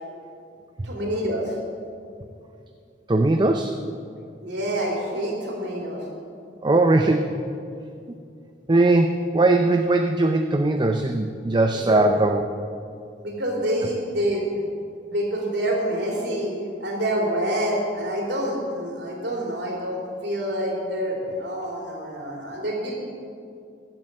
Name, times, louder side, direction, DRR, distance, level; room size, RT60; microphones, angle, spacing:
voice 1, 0.8-1.6 4.4-6.0 11.7-12.2 13.2-14.6 15.0-22.9, right 1 dB, 70° right, -2 dB, 3.4 m, -27 dB
voice 2, 3.1-3.7 6.6-7.3 8.7-12.4, right 2 dB, 25° right, 5 dB, 0.5 m, -20 dB
15.0 x 7.7 x 7.7 m, 2.5 s
head